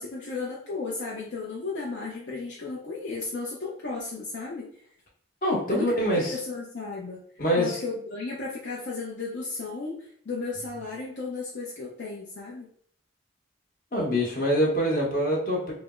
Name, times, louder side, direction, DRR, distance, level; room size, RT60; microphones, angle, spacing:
voice 1, 0.0-4.6 5.7-6.0 6.3-7.2 7.6-12.7, left 3 dB, 60° left, -4 dB, 0.6 m, -34 dB
voice 2, 5.4-6.4 7.4-7.8 13.9-15.7, equal, 45° left, -3 dB, 1.0 m, -24 dB
3.3 x 2.0 x 3.6 m, 0.63 s
head